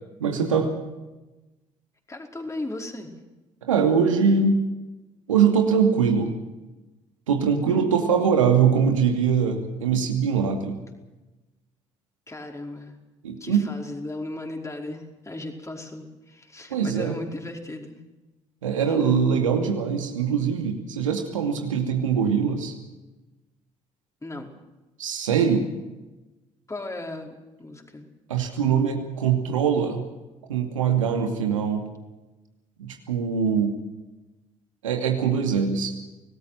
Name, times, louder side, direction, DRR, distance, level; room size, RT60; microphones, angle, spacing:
voice 1, 0.2-0.7 3.6-4.7 5.3-6.3 7.3-10.8 13.2-13.7 16.7-17.2 18.6-22.7 25.0-25.7 28.3-30.0 30.5-31.9 32.8-33.8 34.8-35.9, right 6 dB, 80° right, 4 dB, 2.5 m, -22 dB
voice 2, 2.1-3.1 7.6-7.9 12.3-13.0 13.4-18.0 18.9-19.0 24.2-24.5 26.7-28.1, left 2 dB, 20° left, 2 dB, 5.0 m, -36 dB
26.0 x 19.0 x 6.0 m, 1.1 s
figure-of-eight pair, 50°, 16 cm